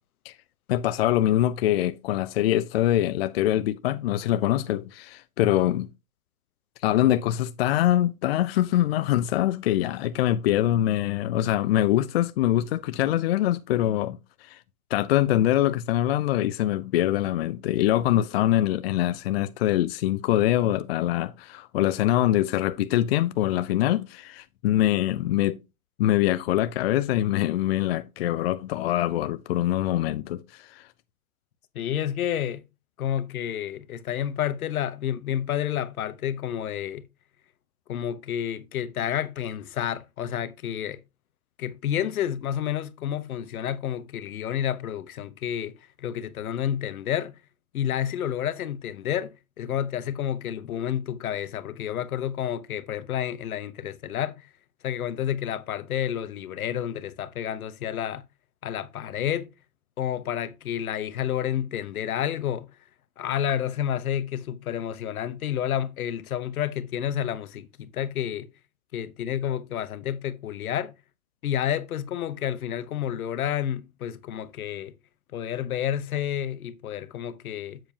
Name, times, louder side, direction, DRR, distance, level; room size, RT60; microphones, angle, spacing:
voice 1, 0.7-5.9 6.8-14.6 14.9-25.6 26.0-30.8, left 13 dB, 45° left, 0.4 m, -24 dB
voice 2, 31.7-32.6 33.0-37.0 37.9-41.0 41.6-47.4 47.7-54.5 54.8-58.2 58.6-59.5 60.0-62.7 63.2-68.5 68.9-70.9 71.4-74.9 75.3-77.8, left 10 dB, 75° left, 1.0 m, -30 dB
7.6 x 6.9 x 2.8 m
hypercardioid pair, 135°, 43 cm